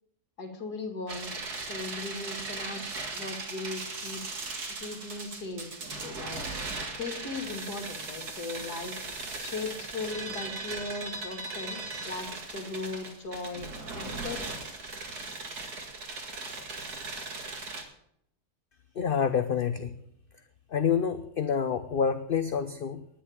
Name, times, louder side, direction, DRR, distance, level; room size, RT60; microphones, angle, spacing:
voice 1, 0.4-4.2 4.7-5.7 6.0-6.4 6.9-9.0 9.4-11.8 12.1-14.7, left 3 dB, 85° left, 4 dB, 2.8 m, -38 dB
sound 1, 1.1-17.8, right 3 dB, 80° right, 2.7 m, -38 dB
voice 2, 19.0-19.9 20.7-23.0, left 7 dB, 45° left, 10 dB, 0.7 m, -27 dB
10.5 x 10.0 x 8.6 m, 0.73 s
omnidirectional pair, 1.7 m